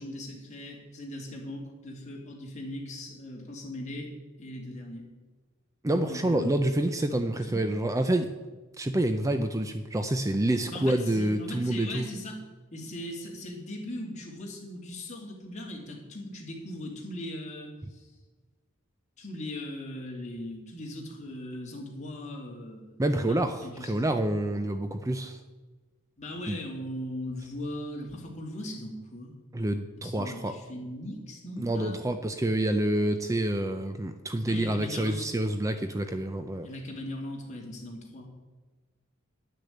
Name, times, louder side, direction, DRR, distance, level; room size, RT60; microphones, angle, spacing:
voice 1, 0.0-4.1 4.4-5.1 6.0-6.5 7.1-7.7 10.7-12.4 12.7-18.1 19.2-23.9 26.2-29.3 30.0-32.0 34.5-35.3 36.6-38.3, left 1 dB, 35° left, -1 dB, 2.7 m, -39 dB
voice 2, 5.8-8.3 8.8-12.1 23.0-25.4 26.5-26.6 29.5-30.5 31.6-36.7, right 1 dB, 15° right, 8 dB, 0.5 m, -28 dB
10.5 x 6.5 x 8.3 m, 1.3 s
head